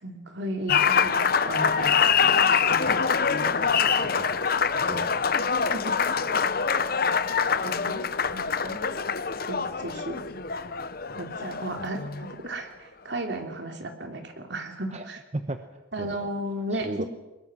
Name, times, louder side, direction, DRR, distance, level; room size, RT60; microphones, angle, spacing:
voice 1, 0.0-2.7 5.7-6.1 7.6-8.1 8.3-8.8 9.5-10.2 11.2-15.2 15.9-16.9, right 1 dB, 60° right, 4 dB, 3.1 m, -35 dB
Applause, 0.7-12.5, left 6 dB, 50° left, 0.8 m, -25 dB
voice 2, 4.0-5.1 11.8-11.9 14.9-15.1 15.3-15.6 16.0-16.3 16.7-17.1, right 1 dB, 35° right, 7 dB, 1.0 m, -36 dB
23.5 x 21.5 x 6.2 m, 1.1 s
head